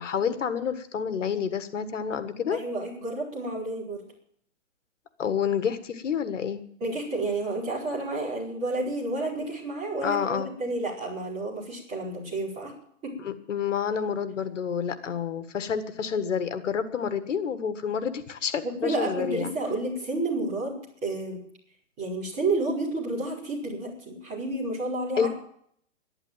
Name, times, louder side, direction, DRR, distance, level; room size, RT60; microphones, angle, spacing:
voice 1, 0.0-2.6 5.2-6.6 10.0-10.5 13.2-19.5 25.2-25.3, left 7 dB, 70° left, 10 dB, 1.7 m, -29 dB
voice 2, 2.5-4.0 6.8-12.7 13.0-13.1 18.8-21.4 22.0-25.3, right 2 dB, 15° right, -6 dB, 4.8 m, -30 dB
12.0 x 11.5 x 9.0 m, 0.65 s
hypercardioid pair, 175°, 38 cm